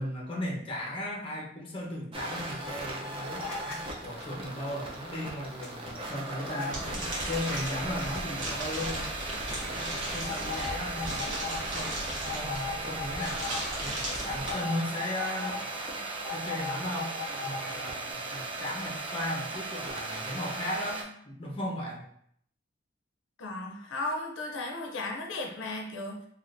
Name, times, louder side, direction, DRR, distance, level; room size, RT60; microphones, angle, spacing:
voice 1, 0.0-9.2 9.7-12.0 12.3-13.5 13.8-17.1 17.4-22.1, left 1 dB, 30° left, -2 dB, 0.7 m, -36 dB
sound 1, 2.1-21.0, right 2 dB, 30° right, 0.4 m, -37 dB
sound 2, 3.4-3.7 4.1-18.1, left 4 dB, 5° left, 1.1 m, -41 dB
sound 3, 6.7-14.5, right 1 dB, 70° right, 1.1 m, -37 dB
voice 2, 23.4-26.3, left 2 dB, 80° left, 1 dB, 0.5 m, -35 dB
3.5 x 2.4 x 2.5 m, 0.67 s
head